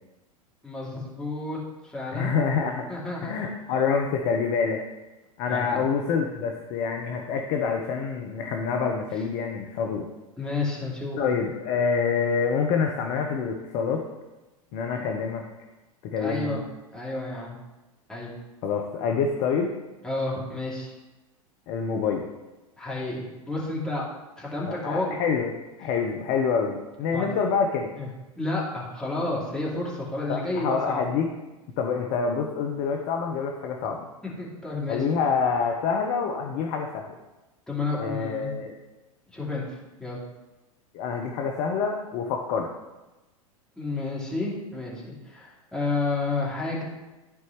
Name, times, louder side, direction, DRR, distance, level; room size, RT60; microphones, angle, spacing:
voice 1, 0.6-2.3 2.9-3.4 5.5-5.9 10.4-11.2 16.2-16.6 16.9-17.5 18.1-18.3 20.0-20.9 22.8-24.1 24.4-25.1 27.1-27.3 28.0-28.1 28.4-31.0 34.2-35.2 37.7-38.5 39.3-40.2 43.8-46.8, left 2 dB, 5° left, -6 dB, 2.6 m, -31 dB
voice 2, 2.1-2.9 3.2-4.8 5.4-10.1 11.2-14.0 14.7-15.4 16.0-16.6 18.6-19.7 21.7-22.3 24.7-27.9 30.3-31.3 31.8-34.1 34.9-37.2 37.9-38.7 40.9-42.7, left 5 dB, 45° left, 3 dB, 0.9 m, -26 dB
13.5 x 4.6 x 3.1 m, 1.1 s
figure-of-eight pair, 95°, 19 cm